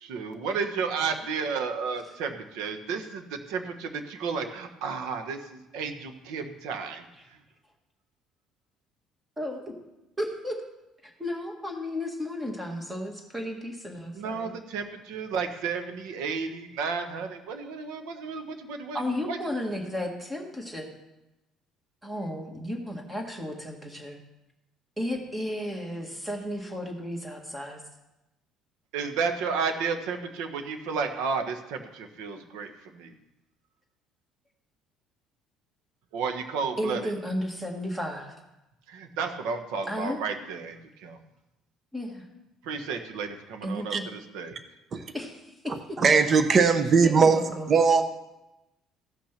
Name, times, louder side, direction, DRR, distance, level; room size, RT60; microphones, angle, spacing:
voice 1, 0.0-7.0 14.1-19.0 19.3-19.4 28.9-33.1 36.1-37.1 38.9-41.2 42.6-44.6, right 5 dB, 85° right, 7 dB, 1.3 m, -32 dB
voice 2, 10.2-10.6 11.0-14.5 18.9-20.9 22.0-24.2 25.0-27.8 36.8-38.3 39.9-40.2 41.9-42.2 43.6-44.0 45.1-45.7 47.0-47.7, left 1 dB, 10° right, 2 dB, 1.7 m, -33 dB
voice 3, 46.0-47.4 47.7-48.1, right 5 dB, 30° right, 8 dB, 0.8 m, -19 dB
15.0 x 6.0 x 5.9 m, 0.98 s
cardioid pair, 155°, 0 cm